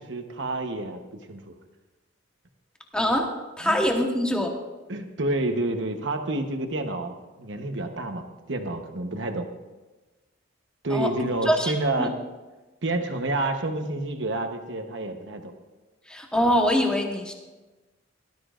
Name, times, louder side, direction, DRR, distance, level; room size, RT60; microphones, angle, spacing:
voice 1, 0.1-1.0 1.3-1.5 3.6-3.8 4.9-9.5 10.8-12.1 12.8-15.5, right 2 dB, 65° right, 6 dB, 1.1 m, -29 dB
voice 2, 2.9-3.3 3.6-4.5 10.9-11.1 11.5-11.7 12.0-12.1 16.1-17.3, equal, 5° left, 1 dB, 1.2 m, -23 dB
17.5 x 12.5 x 2.6 m, 1.2 s
head